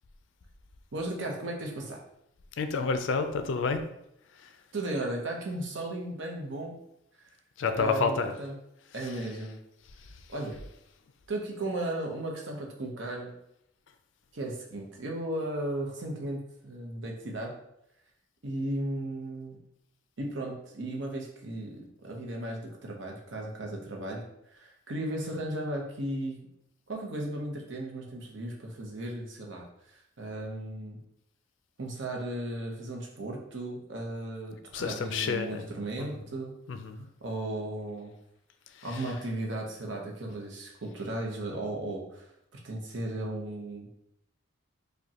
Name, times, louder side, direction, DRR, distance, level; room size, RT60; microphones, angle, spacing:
voice 1, 0.9-2.0 4.7-6.8 7.7-8.5 8.9-9.6 10.3-10.6 11.3-13.3 14.3-17.5 18.4-19.6 20.2-24.2 24.5-26.4 26.9-29.6 30.2-31.0 31.8-36.5 37.2-38.1 38.8-42.2 42.5-43.9, right 1 dB, 70° right, 0 dB, 0.8 m, -35 dB
voice 2, 2.6-3.8 7.6-8.3 34.7-35.7 36.0-36.1 36.7-37.1 38.9-39.0, left 4 dB, 70° left, 7 dB, 0.4 m, -29 dB
4.9 x 2.2 x 2.8 m, 0.79 s
head